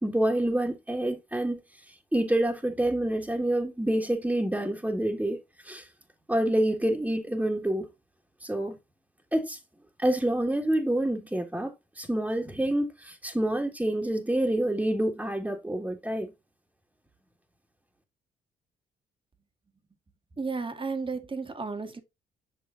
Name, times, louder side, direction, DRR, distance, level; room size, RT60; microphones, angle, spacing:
voice 1, 0.0-5.9 6.3-7.9 8.4-8.8 9.3-9.6 10.0-16.3, right 1 dB, 10° right, 1.8 m, -27 dB
voice 2, 20.4-22.0, right 4 dB, 30° right, 1.8 m, -33 dB
8.7 x 6.2 x 2.6 m
hypercardioid pair, 45°, 18 cm